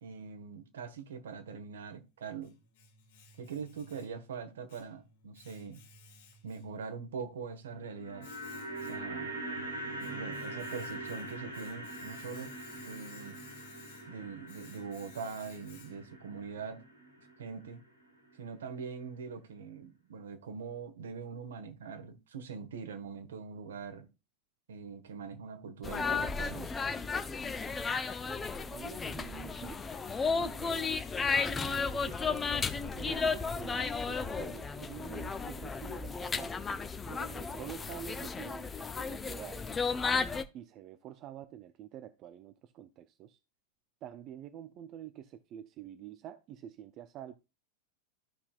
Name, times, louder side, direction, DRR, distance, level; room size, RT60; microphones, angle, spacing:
voice 1, 0.0-2.5 3.4-5.8 6.4-8.3 8.9-9.3 10.0-13.4 14.1-16.8 17.4-17.8 18.4-24.1 24.7-26.7, right 5 dB, 65° right, 1.4 m, -43 dB
Domestic sounds home sounds, 1.9-16.3, left 4 dB, 55° left, 1.6 m, -58 dB
sound 1, 7.8-18.0 18.3-18.4, right 1 dB, 85° right, 4.5 m, -43 dB
sound 2, 25.8-40.4, left 5 dB, 15° left, 0.7 m, -34 dB
voice 2, 28.3-29.8 30.1-31.1 31.9-32.4 32.9-36.5 37.0-38.7 39.0-39.7 40.5-43.4 44.0-47.3, right 10 dB, 35° right, 0.6 m, -47 dB
13.5 x 5.6 x 2.4 m
figure-of-eight pair, 90°, 0 cm